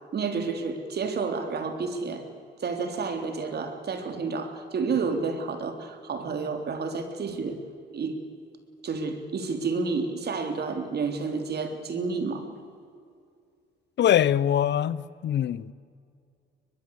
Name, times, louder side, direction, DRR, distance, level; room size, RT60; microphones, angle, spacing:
voice 1, 0.1-2.2 2.6-7.6 7.9-8.2 8.8-12.4, right 4 dB, 55° right, 3.5 m, -30 dB
voice 2, 14.0-15.7, left 10 dB, 60° left, 0.8 m, -23 dB
22.0 x 21.5 x 8.3 m
cardioid pair, 90°, 20 cm